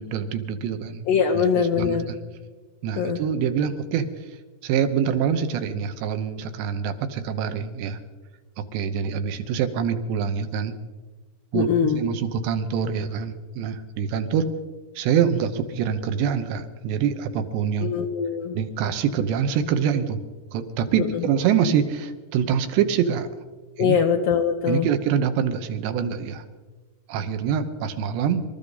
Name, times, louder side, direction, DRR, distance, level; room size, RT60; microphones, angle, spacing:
voice 1, 0.0-1.0 1.3-2.2 2.8-4.1 4.6-8.0 8.6-10.8 11.5-14.5 15.0-17.9 18.5-20.2 20.5-23.3 23.8-24.0 24.7-26.4 27.1-28.4, right 7 dB, 80° right, 8 dB, 3.1 m, -25 dB
voice 2, 1.1-2.1 3.0-3.2 11.5-12.0 17.8-18.6 21.0-21.2 23.8-24.9, left 7 dB, 80° left, 2 dB, 2.1 m, -22 dB
26.0 x 13.5 x 4.0 m, 1.3 s
omnidirectional pair, 5.1 m